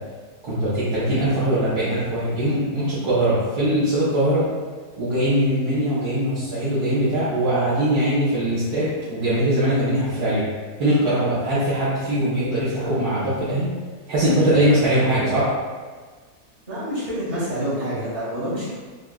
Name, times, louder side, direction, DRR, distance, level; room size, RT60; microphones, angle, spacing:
voice 1, 0.4-4.5 5.0-10.4 10.8-13.7 14.1-15.5, right 1 dB, 65° right, -12 dB, 1.4 m, -21 dB
voice 2, 16.7-18.7, equal, 45° right, -9 dB, 1.8 m, -27 dB
5.9 x 2.4 x 2.3 m, 1.5 s
omnidirectional pair, 1.7 m